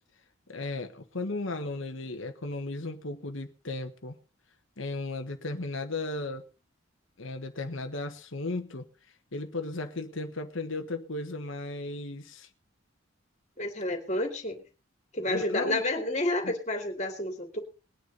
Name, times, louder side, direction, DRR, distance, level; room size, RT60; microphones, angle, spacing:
voice 1, 0.5-4.2 4.8-6.4 7.2-8.9 9.3-12.5 15.2-15.8 16.4-16.5, left 2 dB, 75° left, 1.4 m, -35 dB
voice 2, 13.6-14.6 15.1-17.6, left 1 dB, 35° left, 2.7 m, -30 dB
20.5 x 9.8 x 4.1 m
head